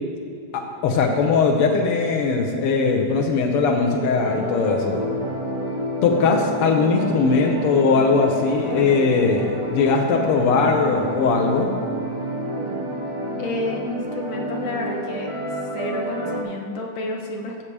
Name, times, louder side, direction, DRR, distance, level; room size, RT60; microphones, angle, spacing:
voice 1, 0.5-5.0 6.0-11.7, left 4 dB, 90° left, 2 dB, 1.2 m, -20 dB
sound 1, 4.1-16.4, right 1 dB, 40° right, 0.4 m, -29 dB
voice 2, 13.4-15.3 15.7-17.6, left 2 dB, 65° left, 1 dB, 1.6 m, -30 dB
14.0 x 7.4 x 3.3 m, 2.5 s
omnidirectional pair, 3.5 m